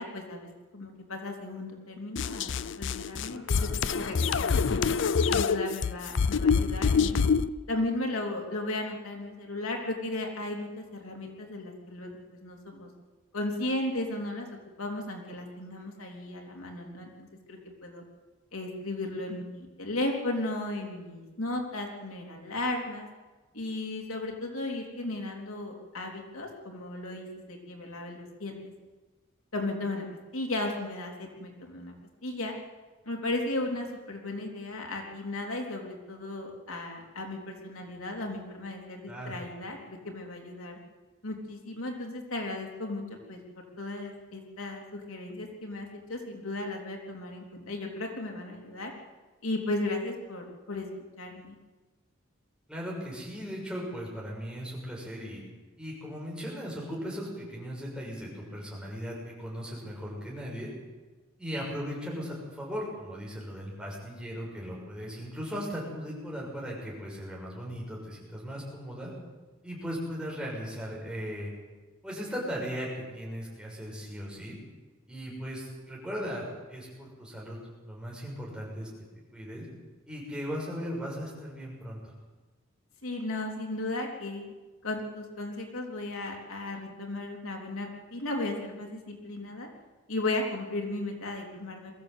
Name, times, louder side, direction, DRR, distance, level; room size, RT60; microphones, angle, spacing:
voice 1, 0.0-4.8 5.3-7.3 7.7-12.9 13.3-14.5 14.8-18.0 18.5-23.1 23.5-28.6 29.5-30.1 30.3-31.9 32.2-32.6 33.1-40.8 41.2-43.4 43.8-48.9 49.4-50.9 51.2-51.6 83.0-84.5 84.8-89.7 90.1-91.9, left 2 dB, 85° left, 1 dB, 3.5 m, -35 dB
sound 1, 2.2-7.5, left 5 dB, 60° left, 0.5 m, -26 dB
voice 2, 3.3-3.7 39.1-39.4 52.7-55.4 55.8-60.7 61.4-69.1 69.6-71.5 72.0-74.6 75.1-77.6 77.8-78.9 79.3-79.6 80.1-82.1, equal, 5° right, -4 dB, 6.7 m, -37 dB
22.5 x 15.0 x 8.3 m, 1.3 s
head